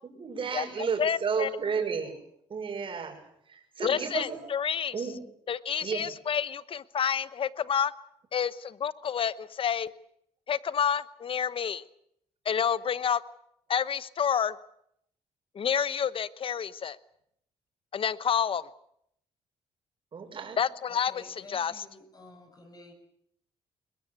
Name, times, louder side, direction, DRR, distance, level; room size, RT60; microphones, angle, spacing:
voice 1, 0.0-2.2 2.5-4.4 4.9-5.2 5.8-6.1 20.1-20.6, right 5 dB, 50° right, 3 dB, 6.1 m, -33 dB
voice 2, 1.0-1.5 3.8-4.9 5.5-7.9 8.3-9.9 10.5-11.8 12.4-13.2 13.7-14.5 15.5-17.0 17.9-18.6 20.6-21.2 21.5-21.8, left 7 dB, 50° left, 17 dB, 1.0 m, -29 dB
voice 3, 20.9-22.9, left 2 dB, 35° left, 6 dB, 7.3 m, -51 dB
21.5 x 21.5 x 8.3 m, 0.73 s
cardioid pair, 80°, 12 cm